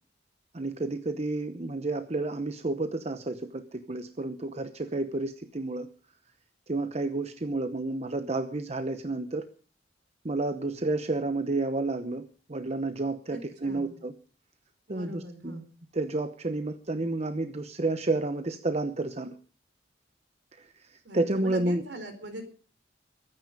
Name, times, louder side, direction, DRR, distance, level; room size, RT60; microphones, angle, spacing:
voice 1, 0.5-5.9 6.7-9.5 10.2-14.1 14.9-15.6 15.9-19.3 20.5-21.8, right 2 dB, 35° right, 9 dB, 0.9 m, -31 dB
voice 2, 13.3-13.9 14.9-15.7 21.0-22.4, right 1 dB, 65° right, 7 dB, 4.3 m, -42 dB
22.0 x 9.6 x 5.3 m, 0.38 s
head